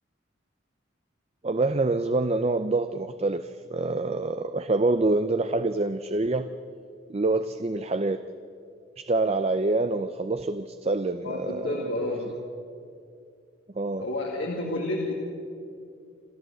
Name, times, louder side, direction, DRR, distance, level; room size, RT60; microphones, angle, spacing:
voice 1, 1.4-6.5 7.1-8.2 9.0-11.7 13.8-14.1, right 2 dB, 35° right, 10 dB, 0.5 m, -26 dB
voice 2, 11.2-12.3 14.0-15.1, left 2 dB, 80° left, -2 dB, 2.6 m, -30 dB
28.5 x 13.5 x 7.7 m, 2.4 s
head